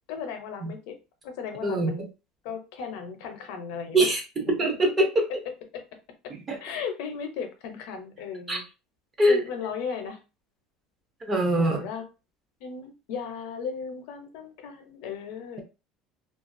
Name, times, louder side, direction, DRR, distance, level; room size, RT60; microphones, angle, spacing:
voice 1, 0.1-1.0 1.2-2.1 2.4-4.1 5.7-5.8 6.6-8.6 9.3-10.2 11.6-12.0 12.6-15.6, left 6 dB, 65° left, 6 dB, 0.6 m, -36 dB
voice 2, 1.6-2.0 3.9-4.2 4.6-5.1 6.5-6.6 8.5-8.6 9.2-9.4 11.2-11.9, right 1 dB, 20° right, 2 dB, 0.5 m, -23 dB
2.4 x 2.3 x 2.5 m, 0.29 s
cardioid pair, 180°, 0 cm